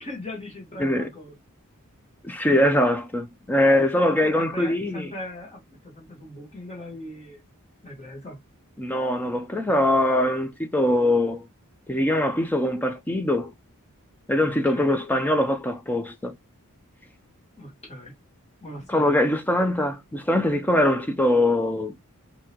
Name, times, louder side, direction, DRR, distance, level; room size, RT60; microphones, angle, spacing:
voice 1, 0.0-1.3 3.6-7.4 7.8-8.4 14.4-15.0 17.6-18.1 18.6-19.2, left 1 dB, 30° left, 1.5 m, -39 dB
voice 2, 2.2-5.1 8.8-11.5 11.9-13.5 14.3-16.3 18.9-22.0, left 1 dB, 10° left, 0.4 m, -22 dB
3.6 x 2.7 x 2.8 m
head